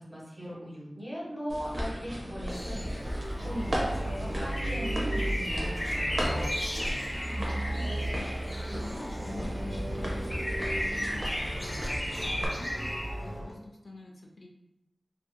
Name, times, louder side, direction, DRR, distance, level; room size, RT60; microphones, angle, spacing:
voice 1, 0.1-6.5, equal, 30° right, -7 dB, 1.4 m, -39 dB
sound 1, 1.5-12.5, equal, 65° right, 0.6 m, -36 dB
sound 2, 2.5-13.1, equal, 20° left, 0.6 m, -36 dB
sound 3, 2.5-13.5, right 1 dB, ahead, 1.3 m, -36 dB
voice 2, 7.2-12.9 13.2-14.5, left 2 dB, 70° left, -1 dB, 0.4 m, -46 dB
2.7 x 2.6 x 2.2 m, 0.92 s
wide cardioid pair, 55°, 0 cm